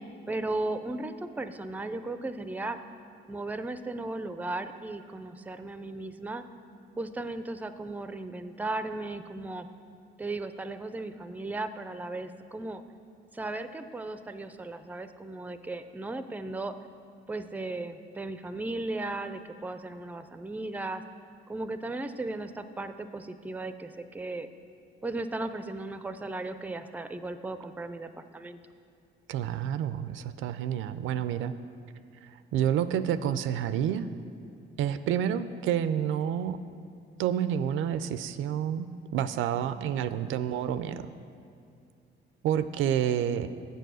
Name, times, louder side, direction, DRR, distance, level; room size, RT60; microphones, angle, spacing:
voice 1, 0.3-2.8 3.3-6.4 7.0-9.7 10.2-12.8 13.3-16.7 17.3-21.0 21.5-24.5 25.0-28.6, right 2 dB, 10° right, 10 dB, 0.4 m, -36 dB
voice 2, 29.3-31.6 32.2-34.1 34.8-36.6 37.2-41.1 42.4-43.5, right 9 dB, 85° right, 13 dB, 0.4 m, -29 dB
7.6 x 6.9 x 6.2 m, 2.3 s
cardioid pair, 90°, 20 cm